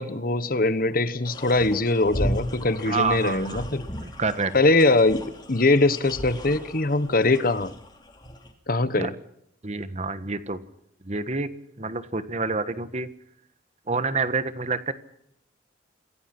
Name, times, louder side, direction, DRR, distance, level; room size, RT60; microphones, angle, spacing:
voice 1, 0.0-3.8 4.5-5.2 5.5-7.7 8.7-9.1, left 2 dB, 45° left, 14 dB, 1.2 m, -22 dB
sound 1, 1.2-8.5, equal, 20° left, 3.2 m, -35 dB
voice 2, 2.8-3.6 4.0-4.5 9.0-9.1 9.6-10.6 11.0-11.5 11.8-13.1 13.9-14.9, right 4 dB, 35° right, 12 dB, 1.4 m, -28 dB
27.0 x 17.0 x 6.0 m, 0.77 s
head